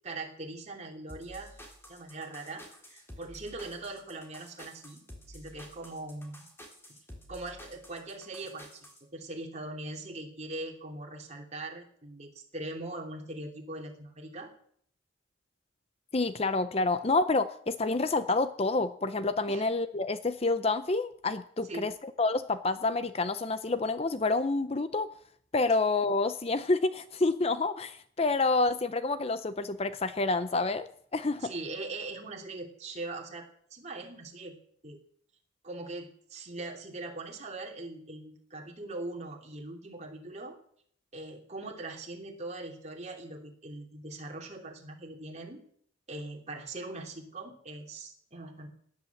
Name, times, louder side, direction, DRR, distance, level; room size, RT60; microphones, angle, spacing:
voice 1, 0.0-1.5 1.9-5.0 5.3-6.4 7.3-8.9 9.1-14.5 19.5-19.7 21.6-21.9 25.7-25.8 31.4-33.4 33.7-34.5 34.8-35.0 35.6-40.6 41.1-45.6 46.1-48.7, right 2 dB, 35° right, 1 dB, 3.1 m, -41 dB
sound 1, 1.1-9.0, equal, 10° left, 3.2 m, -50 dB
voice 2, 16.1-21.9 22.2-25.1 25.5-31.5, left 3 dB, 30° left, 12 dB, 0.6 m, -28 dB
18.0 x 10.5 x 7.3 m, 0.64 s
head